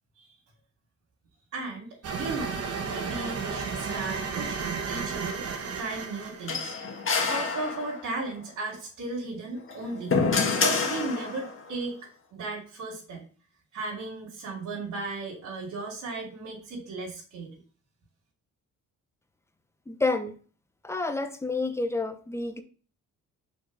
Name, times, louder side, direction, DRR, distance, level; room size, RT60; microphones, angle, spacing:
voice 1, 1.5-6.8 7.3-10.2 10.5-11.9 12.3-13.2 13.7-17.6, right 3 dB, 70° right, 2.6 m, -36 dB
sound 1, 2.0-6.8, right 5 dB, 55° right, 1.2 m, -33 dB
sound 2, 6.5-8.2 9.6-11.6, left 4 dB, 45° left, 1.7 m, -27 dB
voice 2, 19.9-20.4 20.8-22.6, left 3 dB, 10° left, 0.9 m, -29 dB
5.4 x 4.5 x 4.7 m
cardioid pair, 90°, 30 cm